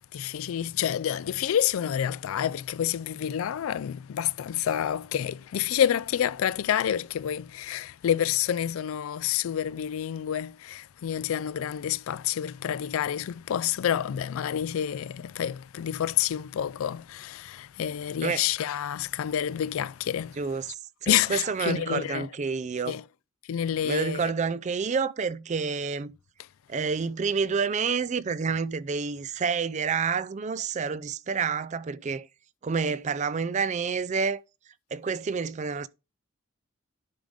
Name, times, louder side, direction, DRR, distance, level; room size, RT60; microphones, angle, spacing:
voice 1, 0.1-20.3 21.1-22.3 22.9-23.0 23.5-24.3, left 10 dB, 75° left, 0.3 m, -28 dB
voice 2, 20.4-20.7 21.0-22.9 23.8-26.1 26.7-32.3 32.6-34.4 34.9-35.9, right 5 dB, 35° right, 0.3 m, -28 dB
10.5 x 5.2 x 3.7 m
head